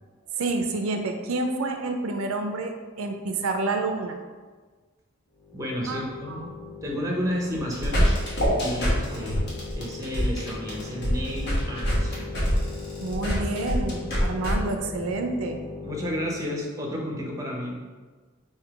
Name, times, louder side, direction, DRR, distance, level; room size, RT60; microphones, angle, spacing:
voice 1, 0.4-2.7 3.0-4.2 5.9-6.4 13.0-15.6, right 3 dB, 85° right, 5 dB, 0.5 m, -28 dB
sound 1, 5.3-16.5, left 5 dB, 75° left, 1.2 m, -39 dB
voice 2, 5.5-6.5 6.8-8.2 8.5-9.4 9.8-12.4 15.8-17.8, equal, 15° right, -1 dB, 0.6 m, -31 dB
sound 2, 7.5-14.5, equal, 50° left, 1.1 m, -25 dB
3.7 x 2.7 x 4.7 m, 1.4 s
head